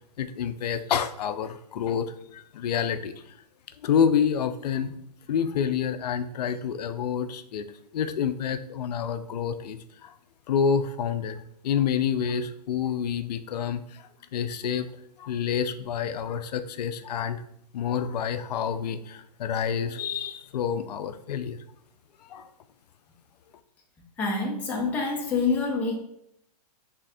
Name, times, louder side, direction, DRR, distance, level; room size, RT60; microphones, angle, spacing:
voice 1, 0.2-3.1 3.8-5.0 5.3-7.7 7.9-10.2 10.5-14.9 15.2-17.4 17.7-21.6 22.2-22.5, left 7 dB, 75° left, 11 dB, 0.4 m, -28 dB
voice 2, 24.2-26.0, left 4 dB, 5° left, -2 dB, 0.4 m, -26 dB
3.5 x 2.4 x 4.1 m, 0.75 s
hypercardioid pair, 160°, 21 cm